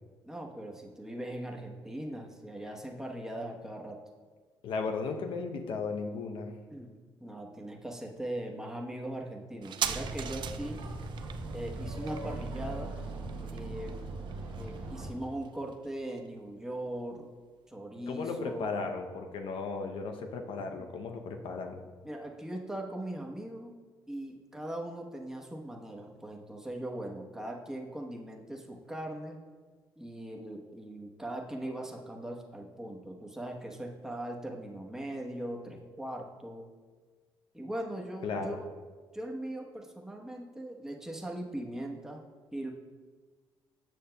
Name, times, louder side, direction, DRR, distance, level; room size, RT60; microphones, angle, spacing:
voice 1, 0.2-4.0 6.7-10.8 11.5-13.0 13.5-14.0 14.6-17.3 17.7-18.8 20.7-20.9 22.0-23.8 24.1-29.4 30.0-36.7 37.5-38.6 39.1-42.2 42.5-42.7, right 1 dB, 5° right, 0 dB, 1.0 m, -40 dB
voice 2, 4.6-6.5 18.1-21.8 38.2-38.6, left 4 dB, 75° left, 5 dB, 0.7 m, -35 dB
sound 1, 9.6-16.7 17.0-17.1, right 9 dB, 60° right, 0.4 m, -41 dB
sound 2, 9.8-15.1, right 2 dB, 75° right, 1.0 m, -39 dB
7.7 x 6.4 x 2.2 m, 1.5 s
supercardioid pair, 60°, 9 cm